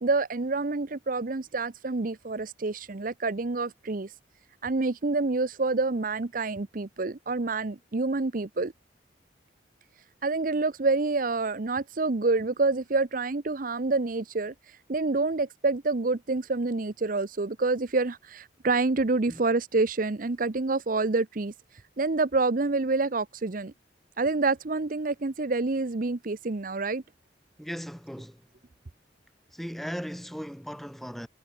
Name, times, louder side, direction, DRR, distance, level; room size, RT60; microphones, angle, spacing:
voice 1, 0.0-4.1 4.6-8.7 10.2-23.7 24.2-27.0, right 3 dB, 45° right, 0.7 m, -27 dB
voice 2, 27.6-28.5 29.5-31.3, equal, ahead, 6.7 m, -37 dB
head